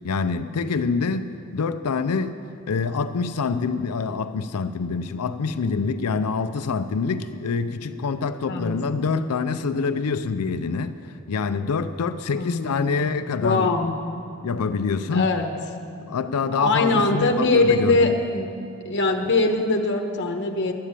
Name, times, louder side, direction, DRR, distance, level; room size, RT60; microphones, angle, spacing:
voice 1, 0.0-2.4 2.7-13.8 14.4-15.3 16.1-18.1, left 5 dB, 85° left, 11 dB, 0.5 m, -26 dB
voice 2, 12.3-12.8 13.4-13.9 15.1-15.5 16.6-18.5 18.8-20.7, left 3 dB, 55° left, 4 dB, 1.1 m, -22 dB
11.5 x 8.2 x 8.8 m, 2.5 s
head